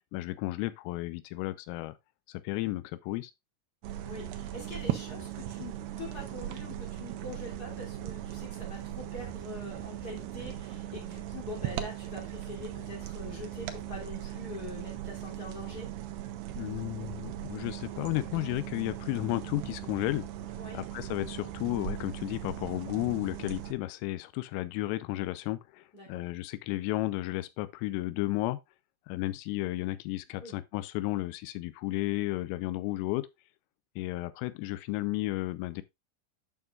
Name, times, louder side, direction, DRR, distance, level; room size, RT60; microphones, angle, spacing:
voice 1, 0.1-2.0 2.3-3.3 16.6-20.3 20.7-28.6 29.1-33.3 34.0-35.8, left 18 dB, 90° left, 3.3 m, -33 dB
sound 1, 3.8-23.7, right 12 dB, 85° right, 2.3 m, -39 dB
voice 2, 4.0-15.9 20.6-20.8 25.9-26.2 30.4-30.5, left 2 dB, 25° left, 2.3 m, -44 dB
11.0 x 6.2 x 2.4 m
omnidirectional pair, 5.8 m